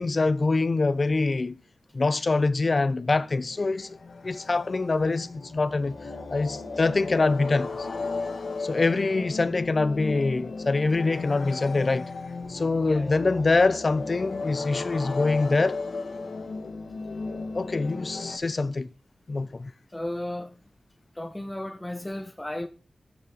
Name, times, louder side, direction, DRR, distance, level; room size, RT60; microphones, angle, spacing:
voice 1, 0.0-1.6 1.9-4.0 4.2-6.0 6.3-7.9 8.6-12.1 12.5-15.8 17.5-18.9 19.3-19.7, left 3 dB, 40° left, 0.6 m, -24 dB
sound 1, 2.9-18.4, left 3 dB, 65° left, 1.8 m, -35 dB
voice 2, 12.9-13.2 19.9-20.5 21.2-22.7, left 1 dB, 15° left, 1.0 m, -34 dB
13.0 x 6.4 x 4.8 m
wide cardioid pair, 125°, 0 cm